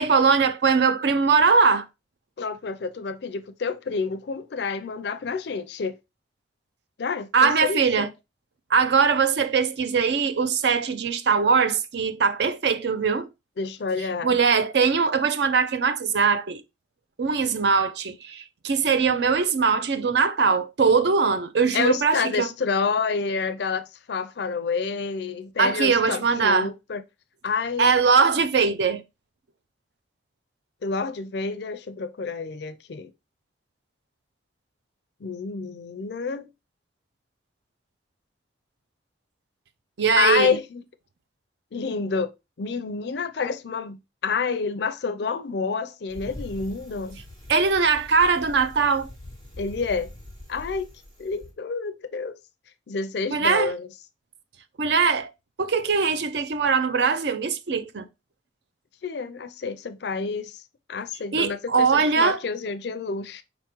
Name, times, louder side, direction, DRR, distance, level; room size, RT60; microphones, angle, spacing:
voice 1, 0.0-1.9 7.3-8.1 8.7-13.3 14.2-16.6 17.2-22.5 25.6-26.7 27.8-29.0 40.0-40.6 47.5-49.1 53.3-53.7 54.8-55.3 55.6-58.0 61.3-62.4, right 5 dB, 60° right, 0.5 m, -21 dB
voice 2, 2.4-5.9 7.0-8.0 13.6-14.4 21.7-27.0 27.4-27.9 30.8-33.1 35.2-36.5 40.1-40.8 41.7-47.2 49.6-50.1 50.5-50.9 51.2-52.4 52.9-53.9 59.0-60.6 60.9-63.4, left 5 dB, 60° left, 0.4 m, -28 dB
Bicycle, 46.1-51.5, left 1 dB, 85° right, 2.2 m, -43 dB
5.0 x 3.6 x 3.0 m
head